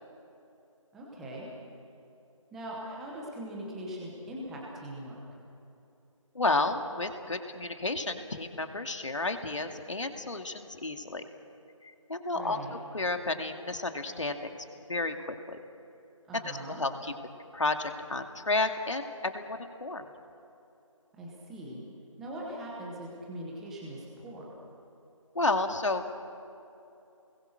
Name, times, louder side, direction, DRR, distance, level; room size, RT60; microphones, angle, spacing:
voice 1, 0.9-1.5 2.5-5.2 12.3-12.7 16.2-16.8 21.1-21.8 22.2-24.5, right 1 dB, ahead, -4 dB, 0.8 m, -41 dB
voice 2, 6.3-11.2 11.8-14.6 14.9-15.6 16.3-17.1 17.5-20.0 25.3-26.1, left 2 dB, 65° left, 5 dB, 2.4 m, -32 dB
30.0 x 21.5 x 6.5 m, 2.8 s
figure-of-eight pair, 170°, 17 cm